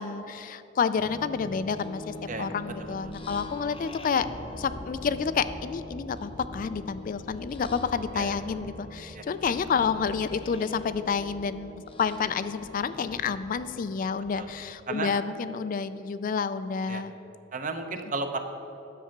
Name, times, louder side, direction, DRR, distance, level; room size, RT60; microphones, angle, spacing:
voice 1, 0.0-4.3 4.6-11.7 12.0-17.1, left 6 dB, 45° left, 12 dB, 0.3 m, -29 dB
sound 1, 1.0-14.6, left 1 dB, 30° left, 0.7 m, -43 dB
voice 2, 2.8-3.1 8.1-8.4 9.1-9.2 14.3-14.5 14.9-15.1 16.9-17.0 17.5-18.4, right 3 dB, 40° right, 7 dB, 0.7 m, -33 dB
10.0 x 7.6 x 5.8 m, 3.0 s
head